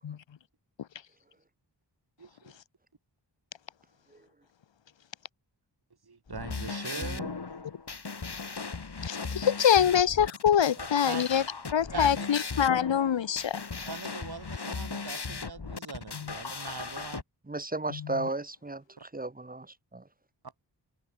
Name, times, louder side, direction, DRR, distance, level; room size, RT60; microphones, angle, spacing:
voice 1, 2.2-2.5 6.1-7.3 11.0-11.3 11.9-12.2 13.9-17.2 19.0-19.1, right 4 dB, 55° right, 3.7 m, -41 dB
sound 1, 6.3-17.2, left 4 dB, 60° left, 5.0 m, -37 dB
voice 2, 6.9-7.3 17.5-19.7 19.9-20.0, right 2 dB, 20° right, 1.2 m, -35 dB
voice 3, 9.0-11.4 11.7-13.6 16.1-16.3 17.9-18.3, left 9 dB, 80° left, 0.9 m, -25 dB
open air
wide cardioid pair, 75°, 44 cm